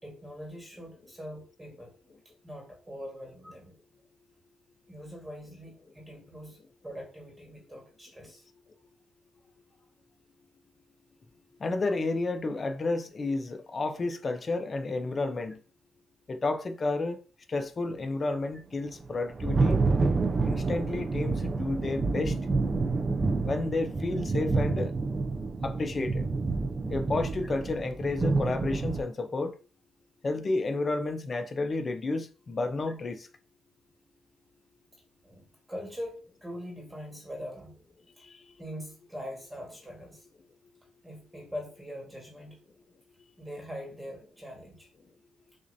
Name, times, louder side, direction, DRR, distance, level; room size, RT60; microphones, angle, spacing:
voice 1, 0.0-1.9 2.4-3.7 4.9-6.6 6.8-8.5 9.7-9.8 35.2-37.8 38.2-38.3 38.6-40.3 41.0-42.6 43.4-44.9, equal, 10° right, 1.5 m, -42 dB
voice 2, 11.6-15.6 16.3-17.2 17.5-19.8 20.4-22.4 23.4-24.9 25.6-26.3 26.9-29.6 30.2-33.3 38.2-38.5, left 3 dB, 35° left, 0.7 m, -31 dB
Thunder, 18.9-29.0, right 3 dB, 30° right, 0.5 m, -28 dB
6.2 x 2.6 x 2.7 m
cardioid pair, 90°, 0 cm